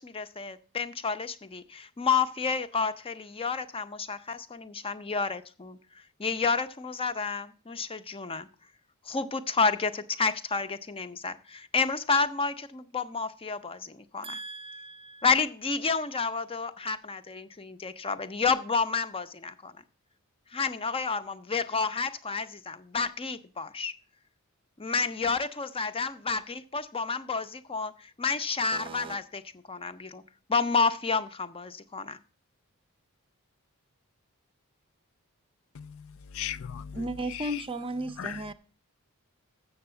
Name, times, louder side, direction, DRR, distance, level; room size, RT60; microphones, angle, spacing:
voice 1, 0.0-5.8 6.2-8.5 9.1-14.4 15.2-19.7 20.5-23.9 24.8-27.9 28.2-29.4 29.7-30.2 30.5-32.2, left 4 dB, 25° left, 0.6 m, -30 dB
voice 2, 14.2-15.3 28.7-29.2 36.9-38.5, right 1 dB, 25° right, 0.6 m, -35 dB
voice 3, 35.7-37.0 37.3-37.6 38.2-38.4, left 9 dB, 65° left, 0.4 m, -38 dB
7.2 x 7.0 x 6.7 m
head